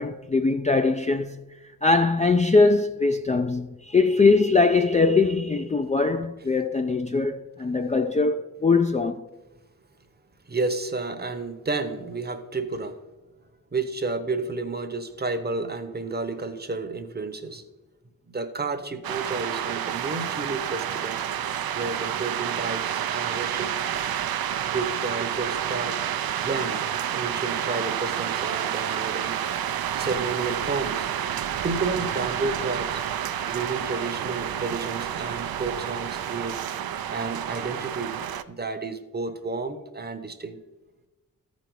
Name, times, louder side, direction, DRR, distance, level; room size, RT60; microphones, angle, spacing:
voice 1, 0.0-1.4 1.8-9.3, left 3 dB, 20° left, 0.3 m, -21 dB
voice 2, 10.5-13.0 13.7-17.7 18.3-21.3 21.7-23.7 24.7-26.0 26.4-26.8 27.1-29.4 30.0-31.1 31.6-33.0 33.5-36.6 37.1-40.6, right 3 dB, 25° right, 0.8 m, -31 dB
sound 1, 19.0-38.4, right 10 dB, 75° right, 0.5 m, -29 dB
13.5 x 5.2 x 4.6 m
wide cardioid pair, 95°, 36 cm